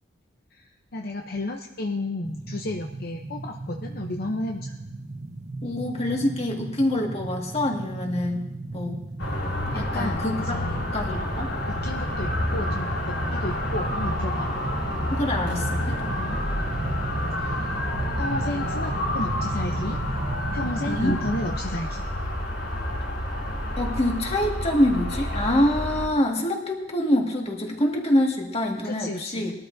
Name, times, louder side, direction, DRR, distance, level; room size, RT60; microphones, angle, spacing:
voice 1, 0.5-4.8 9.7-10.9 11.7-13.0 13.3-14.5 16.2-16.4 17.4-17.7 18.2-20.0 20.5-22.0 28.8-29.5, left 2 dB, 55° left, 2 dB, 0.8 m, -33 dB
sound 1, 2.2-21.6, right 2 dB, 40° right, 0.8 m, -35 dB
voice 2, 5.6-8.5 8.7-9.0 9.8-11.5 15.1-16.1 20.9-21.2 23.8-29.5, left 1 dB, 35° left, 0 dB, 2.0 m, -25 dB
sound 2, 9.2-26.1, left 1 dB, 75° left, 4.7 m, -29 dB
21.0 x 13.0 x 2.7 m, 0.93 s
head